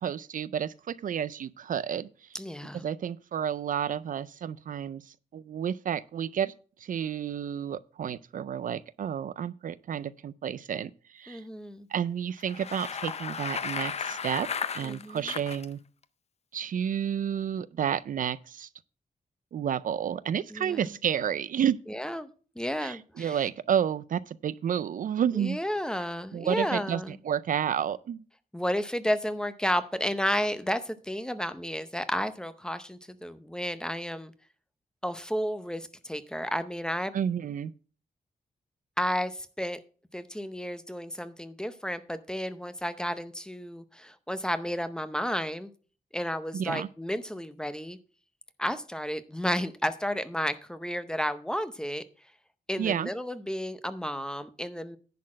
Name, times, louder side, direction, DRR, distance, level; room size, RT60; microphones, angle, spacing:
voice 1, 0.0-2.1 2.8-6.5 6.8-11.4 11.9-14.5 14.7-15.8 16.5-18.7 19.5-21.8 22.8-25.6 26.3-28.2 37.1-37.7 46.5-46.9 52.8-53.1, right 9 dB, 65° right, 0.4 m, -31 dB
voice 2, 2.3-2.9 11.3-11.9 14.8-15.3 20.5-20.9 21.9-22.3 22.6-23.5 25.3-27.2 28.5-34.3 35.0-37.1 39.0-39.8 40.1-45.7 46.1-48.0 48.6-52.0 52.7-55.0, equal, 5° left, 0.6 m, -32 dB
Bicycle, 12.4-15.7, left 6 dB, 45° left, 0.6 m, -34 dB
10.5 x 4.1 x 7.4 m
wide cardioid pair, 150°, 15 cm